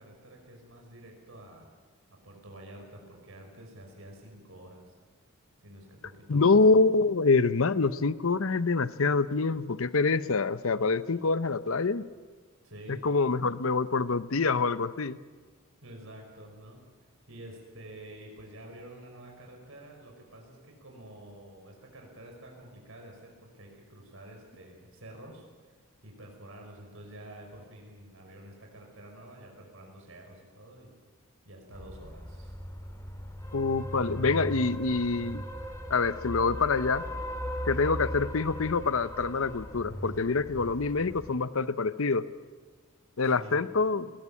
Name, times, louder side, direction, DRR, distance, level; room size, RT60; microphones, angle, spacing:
voice 1, 0.0-1.7 2.2-4.9 5.6-6.6 12.6-13.0 15.8-16.8 17.3-25.5 26.0-30.9 31.5-32.5 43.2-43.6, right 1 dB, 65° right, 1 dB, 5.5 m, -48 dB
voice 2, 6.3-12.0 12.9-15.2 33.5-35.4 35.9-37.0 37.7-42.2 43.2-44.0, left 4 dB, 65° left, 14 dB, 0.8 m, -26 dB
sound 1, 31.7-41.3, equal, 15° left, 2.2 m, -38 dB
21.0 x 19.5 x 8.7 m, 1.5 s
head